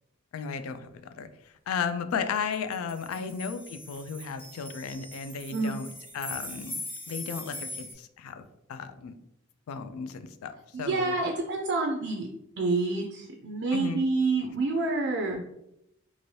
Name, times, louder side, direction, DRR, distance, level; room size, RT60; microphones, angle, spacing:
voice 1, 0.3-0.9 1.1-1.3 1.7-5.9 6.1-6.8 7.1-9.1 9.7-11.2 13.7-14.1, left 6 dB, 85° left, 10 dB, 0.3 m, -34 dB
sound 1, 2.5-7.9, left 1 dB, 10° left, 0.7 m, -41 dB
voice 2, 10.7-12.3 12.6-15.4, right 3 dB, 55° right, 2 dB, 0.4 m, -28 dB
2.7 x 2.5 x 3.1 m, 0.82 s
head